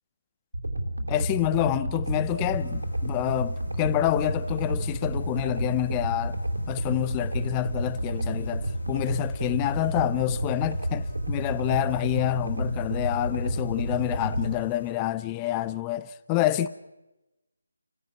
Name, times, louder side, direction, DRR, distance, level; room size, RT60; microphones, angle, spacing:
sound 1, 0.5-14.5, right 1 dB, 85° right, 3.0 m, -30 dB
voice 1, 1.1-6.4 6.7-16.7, left 15 dB, 15° left, 0.7 m, -28 dB
sound 2, 2.4-14.9, left 2 dB, 75° left, 3.0 m, -48 dB
29.0 x 16.0 x 5.9 m
figure-of-eight pair, 155°, 0 cm